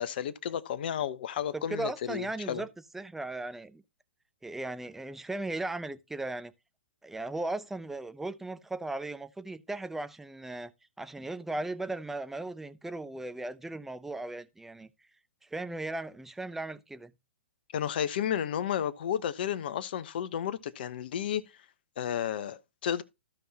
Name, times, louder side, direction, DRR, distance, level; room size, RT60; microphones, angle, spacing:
voice 1, 0.0-2.6 17.7-21.4 22.0-23.0, left 9 dB, 55° left, 1.0 m, -32 dB
voice 2, 1.5-2.7 2.9-3.8 4.4-6.5 7.0-10.7 11.0-14.9 15.5-17.1, right 2 dB, 5° right, 0.7 m, -37 dB
15.0 x 5.6 x 2.8 m
figure-of-eight pair, 120°, 6 cm